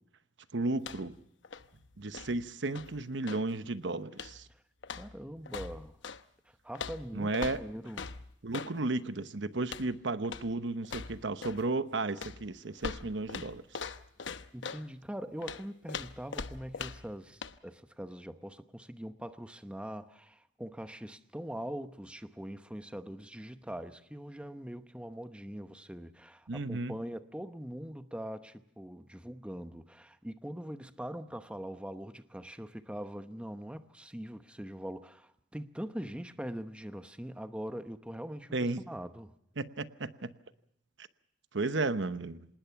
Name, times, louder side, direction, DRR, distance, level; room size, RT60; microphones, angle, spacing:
voice 1, 0.5-1.2 2.0-4.5 7.1-7.6 8.4-13.6 26.5-27.0 38.5-38.8 39.6-40.3 41.5-42.5, right 2 dB, 75° right, 1.0 m, -33 dB
sound 1, 0.8-1.2 1.4-3.5 4.1-4.5 4.8-6.2 6.7-8.8 9.6-9.9 10.2-10.5 10.8-11.7 12.2-14.9 15.4-17.1 17.4-17.6, left 5 dB, 80° left, 0.9 m, -42 dB
voice 2, 4.9-6.0 6.5-8.1 14.5-39.3, equal, 5° right, 0.9 m, -42 dB
26.5 x 19.5 x 5.8 m
head